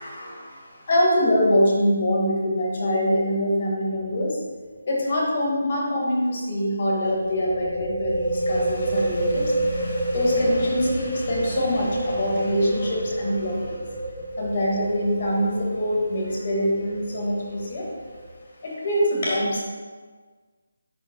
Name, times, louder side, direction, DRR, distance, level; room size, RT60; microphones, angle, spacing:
voice 1, 0.0-4.4 4.9-14.0 14.4-17.8 18.6-19.6, equal, 45° left, -2 dB, 2.0 m, -24 dB
sound 1, 3.9-4.2 4.4-4.5 7.0-18.4, right 1 dB, 20° right, 1.4 m, -29 dB
9.7 x 5.1 x 2.3 m, 1.5 s
figure-of-eight pair, 155°, 0 cm